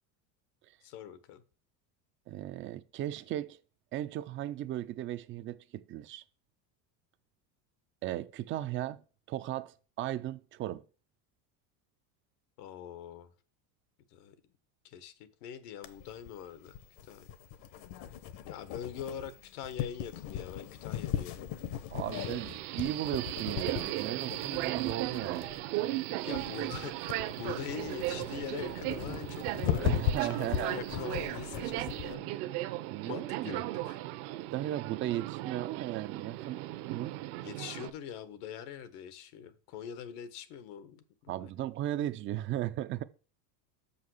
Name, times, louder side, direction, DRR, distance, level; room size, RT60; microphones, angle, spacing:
voice 1, 0.8-1.4 12.6-13.3 14.1-14.3 14.8-15.1 15.4-16.7 17.1-17.2 18.5-21.3 22.1-22.5 24.6-24.7 26.2-32.4 33.0-34.0 37.4-41.5, left 9 dB, 80° left, 1.4 m, -43 dB
voice 2, 2.3-3.6 3.9-6.2 8.0-9.0 9.3-10.8 21.9-25.5 26.2-26.4 29.7-30.8 32.9-33.6 34.5-37.1 41.3-43.0, right 13 dB, 30° right, 0.4 m, -36 dB
sound 1, 15.8-32.1, left 10 dB, 60° left, 1.1 m, -38 dB
Subway metro underground, 22.1-37.9, right 16 dB, 65° right, 0.9 m, -37 dB
6.3 x 5.6 x 6.3 m
cardioid pair, 150°, 45 cm